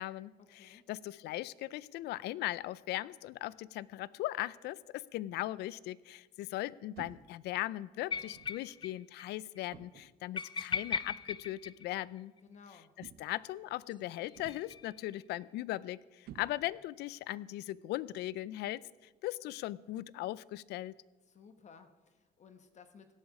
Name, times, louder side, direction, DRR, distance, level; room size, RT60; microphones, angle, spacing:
voice 1, 0.0-12.3 13.0-20.9, left 16 dB, 80° left, 21 dB, 0.5 m, -39 dB
sound 1, 7.0-7.4 8.3-8.6 9.7-10.2 11.3-11.5 13.0-13.5 14.3-14.9 16.3-16.9, right 10 dB, 65° right, 0.8 m, -53 dB
sound 2, 8.1-8.9 9.2-9.3 9.6-9.7 10.4-12.4 13.9-15.2, left 6 dB, 25° left, 0.5 m, -38 dB
voice 2, 12.4-12.9 21.3-23.1, left 6 dB, 45° left, 8 dB, 1.1 m, -57 dB
17.5 x 10.5 x 4.9 m, 1.3 s
cardioid pair, 110°, 17 cm